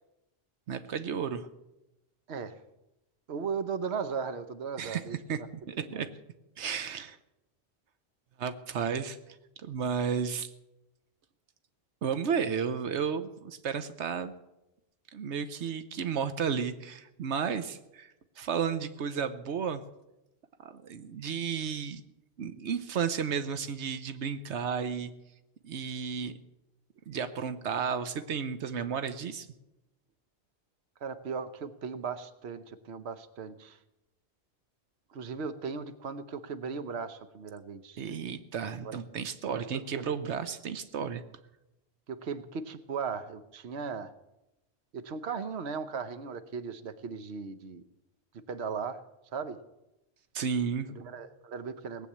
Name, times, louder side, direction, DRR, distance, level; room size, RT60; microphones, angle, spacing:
voice 1, 0.7-1.5 4.8-5.0 5.3-5.4 5.7-6.1 6.6-7.2 8.4-9.2 9.6-10.5 12.0-14.3 15.1-19.8 20.6-22.0 22.4-25.1 25.6-26.3 27.1-29.5 38.0-41.2 50.3-50.9, right 7 dB, 90° right, 11 dB, 1.1 m, -33 dB
voice 2, 3.3-6.1 31.0-33.8 35.1-38.1 38.8-38.9 39.5-39.7 39.9-40.0 42.1-44.1 44.9-47.8 48.5-49.0 49.3-49.6 50.9-52.1, right 5 dB, 70° right, 11 dB, 1.1 m, -37 dB
19.0 x 8.3 x 8.5 m, 0.92 s
omnidirectional pair, 1.1 m